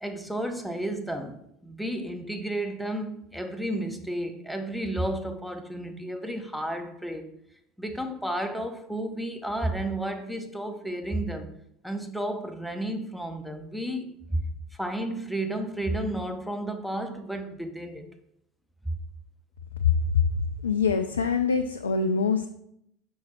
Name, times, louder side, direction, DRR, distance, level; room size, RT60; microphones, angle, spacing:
voice 1, 0.0-7.3 7.8-11.5 11.8-14.4 14.8-18.1 18.8-18.9, right 1 dB, ahead, 6 dB, 0.9 m, -32 dB
voice 2, 19.8-22.5, left 5 dB, 80° left, 5 dB, 0.4 m, -24 dB
6.2 x 4.6 x 4.2 m, 0.74 s
figure-of-eight pair, 70°, 0 cm